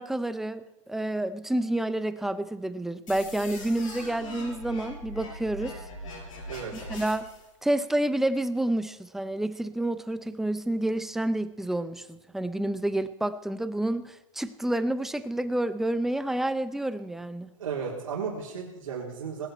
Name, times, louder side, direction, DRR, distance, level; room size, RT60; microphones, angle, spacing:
voice 1, 0.0-5.7 6.7-7.3 7.6-17.5, right 1 dB, ahead, 12 dB, 0.5 m, -29 dB
sound 1, 3.1-7.5, left 1 dB, 80° left, 6.7 m, -41 dB
voice 2, 17.6-19.5, right 6 dB, 85° right, -6 dB, 3.6 m, -34 dB
19.5 x 10.5 x 4.4 m, 1.0 s
hypercardioid pair, 140°, 17 cm